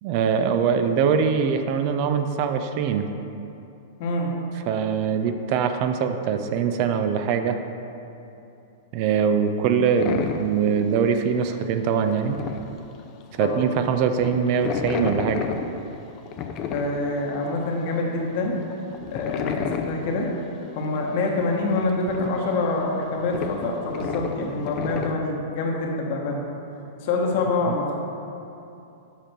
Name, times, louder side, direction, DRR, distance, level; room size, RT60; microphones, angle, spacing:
voice 1, 0.0-3.1 4.7-7.6 8.9-12.4 13.4-15.4, right 6 dB, 50° right, 7 dB, 0.5 m, -22 dB
voice 2, 4.0-4.3 13.4-13.5 16.7-18.6 19.1-20.3 20.7-26.4 27.0-27.8, left 3 dB, 55° left, 0 dB, 1.2 m, -26 dB
sound 1, 10.0-10.7 11.0-11.5 11.7-11.8 12.1-13.5 13.8-17.5 17.9-18.0 18.3-20.1 20.5-20.6 21.0-21.3 21.5-25.1, left 6 dB, 40° left, 0.5 m, -31 dB
7.3 x 5.2 x 4.4 m, 2.8 s
hypercardioid pair, 110°, 0 cm